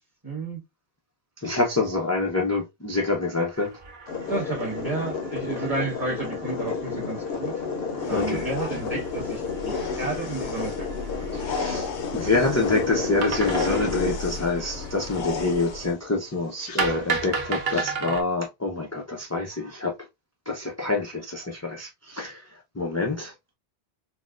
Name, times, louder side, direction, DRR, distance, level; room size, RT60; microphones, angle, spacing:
voice 1, 0.2-0.6 4.3-7.5 8.1-10.9, right 3 dB, 20° right, 1.4 m, -31 dB
voice 2, 1.4-3.7 8.1-8.5 11.3-19.9 20.5-22.5 22.8-23.3, left 3 dB, 25° left, 0.4 m, -26 dB
sound 1, 3.4-11.5 13.2-15.3 16.8-18.2, right 4 dB, 50° right, 0.8 m, -35 dB
sound 2, 4.1-17.9, left 5 dB, 60° left, 0.8 m, -32 dB
sound 3, 8.0-15.9, left 4 dB, 85° left, 1.0 m, -34 dB
4.0 x 2.2 x 2.4 m
omnidirectional pair, 1.1 m